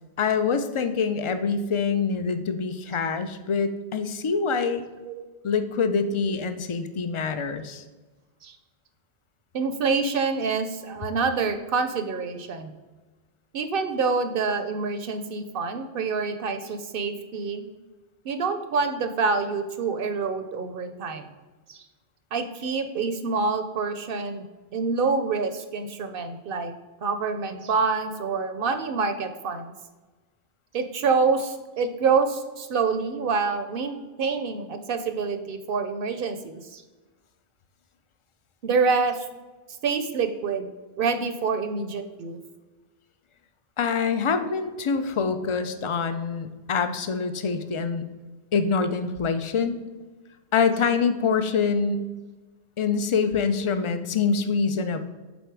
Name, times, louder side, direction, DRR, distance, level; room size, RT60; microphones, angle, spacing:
voice 1, 0.2-4.8 5.4-7.8 43.8-48.0 48.5-49.8 50.5-52.0 52.8-55.0, left 5 dB, 45° left, 9 dB, 0.4 m, -25 dB
voice 2, 9.5-12.7 13.5-17.6 18.2-21.3 21.7-21.9 22.3-24.4 24.7-26.7 27.0-29.7 30.7-36.8 38.6-39.3 39.8-40.7 41.0-42.4, right 4 dB, 60° right, 9 dB, 0.7 m, -26 dB
8.0 x 4.1 x 4.6 m, 1.2 s
omnidirectional pair, 1.1 m